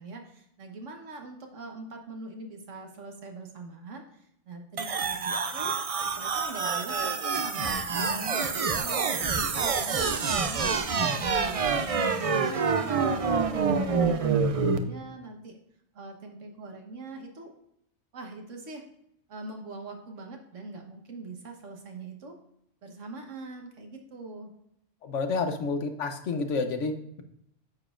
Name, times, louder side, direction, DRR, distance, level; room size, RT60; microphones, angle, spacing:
voice 1, 0.0-5.8 6.2-15.6 15.9-17.5 18.1-18.8 19.3-22.3 22.8-24.5 25.4-25.6, right 3 dB, 85° right, 3 dB, 1.6 m, -43 dB
sound 1, 4.8-14.8, right 5 dB, 45° right, 0.5 m, -27 dB
voice 2, 25.0-27.2, left 4 dB, 80° left, 7 dB, 1.2 m, -30 dB
9.3 x 7.1 x 2.5 m, 0.75 s
omnidirectional pair, 1.3 m